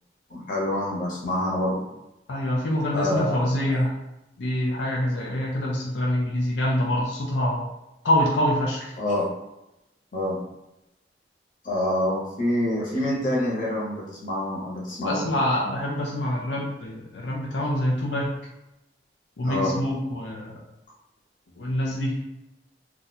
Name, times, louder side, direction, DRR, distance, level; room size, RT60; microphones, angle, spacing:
voice 1, 0.3-1.8 2.9-3.6 9.0-9.3 10.1-10.4 11.6-15.2 19.4-19.7, left 1 dB, 50° left, -5 dB, 1.1 m, -26 dB
voice 2, 2.3-3.9 4.4-7.6 8.0-8.9 15.0-18.3 19.4-20.5 21.6-22.1, left 1 dB, 85° left, -3 dB, 0.6 m, -25 dB
2.6 x 2.4 x 4.1 m, 0.91 s
head